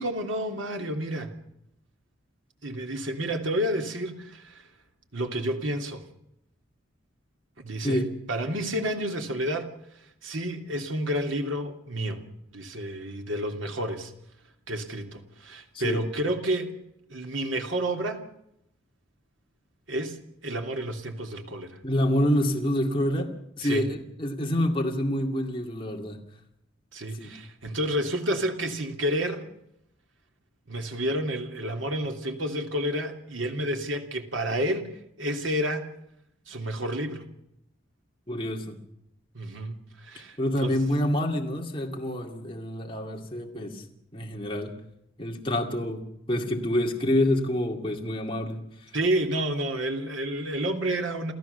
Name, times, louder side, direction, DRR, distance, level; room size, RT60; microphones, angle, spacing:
voice 1, 0.0-1.3 2.6-4.7 5.1-6.0 7.6-9.7 10.2-12.2 12.5-14.1 14.7-16.8 17.1-18.2 19.9-20.2 20.4-21.8 23.6-23.9 26.9-29.5 30.7-34.9 35.2-35.9 36.5-37.2 39.3-40.8 48.9-51.3, right 1 dB, 85° right, 4 dB, 2.9 m, -30 dB
voice 2, 21.8-23.3 23.6-26.2 27.1-27.3 38.3-38.8 40.4-43.8 44.1-44.7 45.2-48.6, left 1 dB, 25° left, 1 dB, 2.3 m, -27 dB
29.0 x 14.0 x 6.9 m, 0.79 s
head